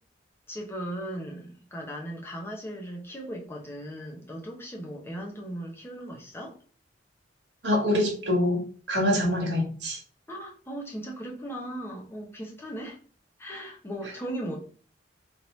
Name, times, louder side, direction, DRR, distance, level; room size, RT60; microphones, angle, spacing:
voice 1, 0.5-6.6 10.3-13.0 13.4-14.6, right 1 dB, 15° left, 1.0 m, -37 dB
voice 2, 7.6-10.0, left 1 dB, 75° right, 1.7 m, -25 dB
3.8 x 3.1 x 4.0 m
head